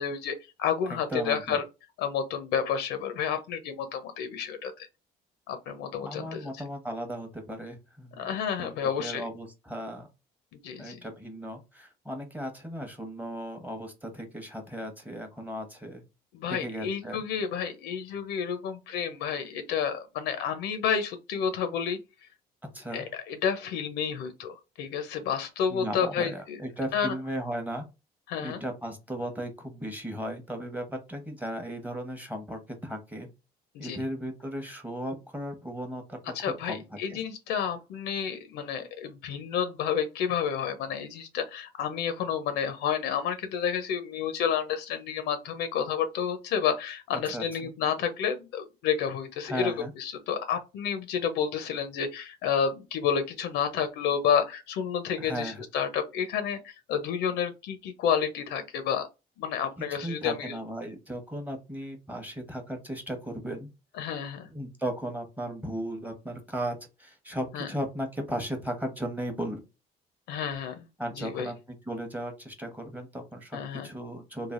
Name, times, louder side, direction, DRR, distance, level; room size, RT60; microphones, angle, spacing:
voice 1, 0.0-1.6 2.0-4.9 5.5-6.6 8.2-9.2 10.6-11.0 16.3-22.0 22.9-26.6 26.9-27.1 28.3-28.6 33.7-34.0 36.3-59.1 59.4-60.6 64.0-64.5 67.5-67.7 70.3-70.9 71.2-71.5 73.5-73.9, left 7 dB, 85° left, 0.5 m, -30 dB
voice 2, 0.9-1.6 6.0-8.3 8.6-8.7 9.0-10.1 10.8-16.0 16.5-17.2 22.7-23.0 25.7-27.8 28.4-33.3 33.8-36.8 37.1-37.2 47.3-47.7 49.5-49.9 55.2-55.6 59.8-63.7 64.5-69.6 71.0-74.5, right 1 dB, 10° right, 0.8 m, -36 dB
3.2 x 2.3 x 2.4 m
cardioid pair, 110°, 17 cm